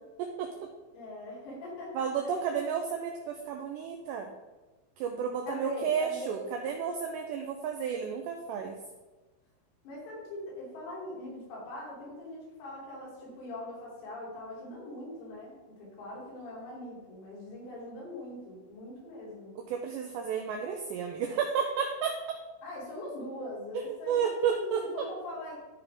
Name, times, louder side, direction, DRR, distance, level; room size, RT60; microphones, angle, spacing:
voice 1, 0.2-0.7 1.9-4.3 5.0-8.8 19.7-22.4 23.7-24.8, right 7 dB, 85° right, 2 dB, 2.5 m, -32 dB
voice 2, 0.9-2.3 5.5-6.4 9.8-19.5 22.6-25.6, left 1 dB, 85° left, -6 dB, 5.8 m, -42 dB
14.5 x 5.1 x 3.5 m, 1.2 s
omnidirectional pair, 5.9 m